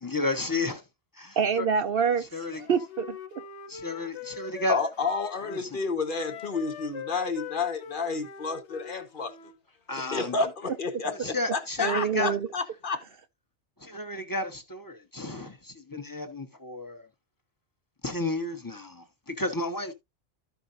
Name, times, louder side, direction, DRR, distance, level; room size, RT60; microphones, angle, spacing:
voice 1, 0.0-0.8 1.2-1.3 1.6-1.7 2.2-2.6 3.7-4.8 5.5-5.8 9.9-10.5 11.0-12.4 13.8-17.1 18.0-19.9, left 2 dB, 20° left, 1.0 m, -32 dB
voice 2, 1.4-2.3 2.5-3.2 11.8-12.5, right 6 dB, 60° right, 0.8 m, -26 dB
Wind instrument woodwind instrument, 2.6-5.6 6.1-9.6, left 8 dB, 80° left, 1.1 m, -42 dB
voice 3, 4.7-9.3 10.1-13.0, left 4 dB, 50° left, 1.2 m, -30 dB
13.5 x 5.2 x 2.6 m
omnidirectional pair, 1.1 m